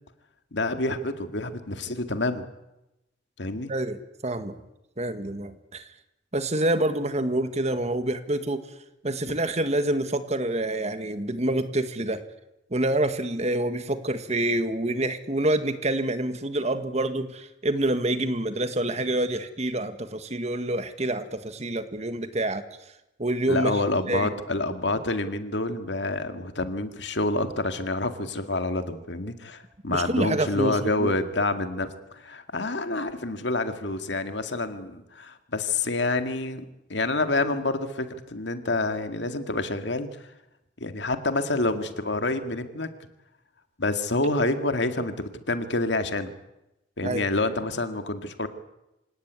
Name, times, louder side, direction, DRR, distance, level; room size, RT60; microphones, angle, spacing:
voice 1, 0.5-2.5 3.4-3.7 23.5-40.1 40.8-42.9 43.8-46.3 47.0-48.5, left 2 dB, 65° left, 8 dB, 2.1 m, -28 dB
voice 2, 3.7-4.6 5.0-5.9 6.3-8.7 9.0-12.3 12.7-22.6 23.2-23.8 24.1-24.3 29.9-31.1 47.0-47.3, right 1 dB, 35° right, 10 dB, 1.7 m, -27 dB
26.5 x 17.5 x 9.6 m, 0.92 s
head